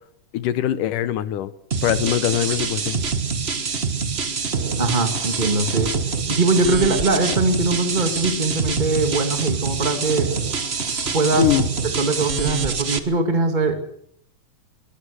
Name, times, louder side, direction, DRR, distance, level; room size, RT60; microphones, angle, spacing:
voice 1, 0.3-1.5 1.8-3.0 11.4-11.7, left 12 dB, 85° left, 14 dB, 2.5 m, -22 dB
sound 1, 1.7-13.0, right 5 dB, 85° right, 0.5 m, -25 dB
voice 2, 4.8-5.9 6.3-10.3 11.1-11.5 11.8-13.7, right 3 dB, 20° right, 6 dB, 1.4 m, -21 dB
23.0 x 19.5 x 6.5 m, 0.66 s
omnidirectional pair, 3.6 m